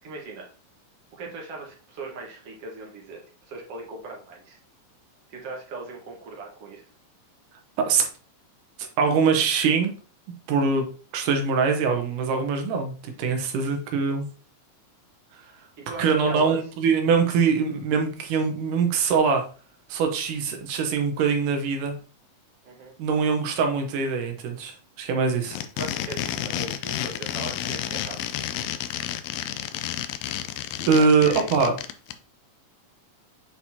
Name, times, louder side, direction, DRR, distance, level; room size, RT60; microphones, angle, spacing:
voice 1, 0.0-0.5 1.1-4.6 5.3-6.9 15.8-16.6 22.6-23.0 25.7-28.2 31.0-31.8, right 3 dB, 55° right, -1 dB, 2.1 m, -39 dB
voice 2, 9.0-9.9 10.5-10.9 11.1-14.3 16.0-19.4 19.9-22.0 23.0-25.6 30.9-31.7, right 5 dB, 85° right, 4 dB, 2.5 m, -23 dB
sound 1, 25.4-32.1, left 11 dB, 85° left, 1.5 m, -31 dB
7.7 x 4.4 x 2.8 m, 0.38 s
omnidirectional pair, 3.6 m